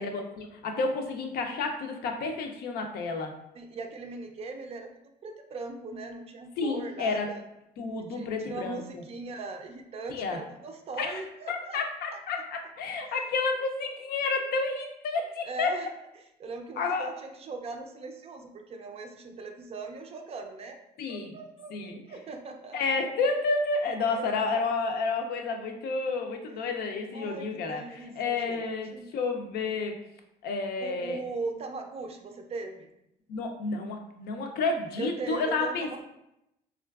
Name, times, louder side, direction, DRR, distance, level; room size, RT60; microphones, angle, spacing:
voice 1, 0.0-3.3 6.6-7.3 7.8-9.0 10.1-10.4 11.0-11.2 11.5-15.8 16.8-17.1 21.0-21.3 21.7-22.0 22.7-29.9 30.4-31.2 33.3-36.0, left 4 dB, 70° left, 4 dB, 0.5 m, -30 dB
voice 2, 3.5-4.9 5.2-7.4 8.1-11.8 13.1-13.3 15.4-15.9 16.4-20.8 21.1-23.0 24.1-24.3 26.5-26.7 27.1-29.1 30.8-32.9 35.0-36.0, right 3 dB, 35° right, 4 dB, 0.4 m, -39 dB
3.6 x 2.3 x 2.3 m, 0.84 s
cardioid pair, 110°, 17 cm